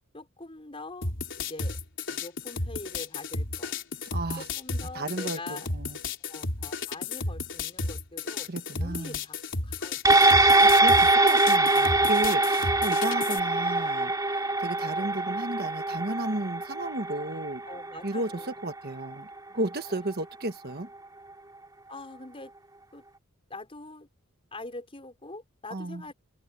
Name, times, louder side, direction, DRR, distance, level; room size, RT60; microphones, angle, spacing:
voice 1, 0.1-1.1 1.4-1.8 2.1-3.7 4.4-5.7 6.3-8.5 8.8-10.5 12.2-12.7 14.8-15.3 17.7-18.6 19.5-19.7 21.9-22.5 22.9-23.0 23.5-24.1 24.5-26.1, left 2 dB, 25° left, 5.1 m, -44 dB
sound 1, 1.0-13.4, left 3 dB, 55° left, 4.1 m, -33 dB
voice 2, 4.1-4.4 4.9-6.0 8.5-9.2 10.7-17.6 18.0-18.3 18.6-19.3 19.5-20.9 25.7-26.0, right 2 dB, 45° right, 1.3 m, -33 dB
sound 2, 10.1-18.7 19.1-19.2, right 2 dB, 15° right, 2.4 m, -23 dB
head